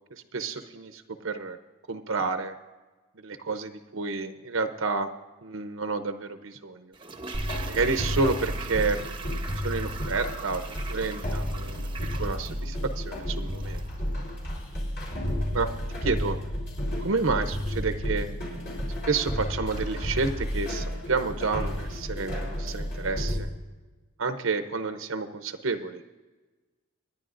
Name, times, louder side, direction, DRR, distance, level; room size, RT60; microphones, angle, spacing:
voice 1, 0.1-1.6 1.9-2.5 3.2-5.1 5.4-6.9 7.7-9.0 9.6-13.9 15.5-15.7 16.0-16.4 17.0-18.3 19.1-23.5 24.2-26.0, right 4 dB, 65° right, 7 dB, 0.7 m, -30 dB
Toilet flush, 6.9-14.0 14.3-14.4, right 4 dB, 25° right, 0.8 m, -41 dB
sound 1, 7.3-23.4, equal, 50° left, 3.8 m, -32 dB
26.0 x 10.5 x 2.5 m, 1.2 s
head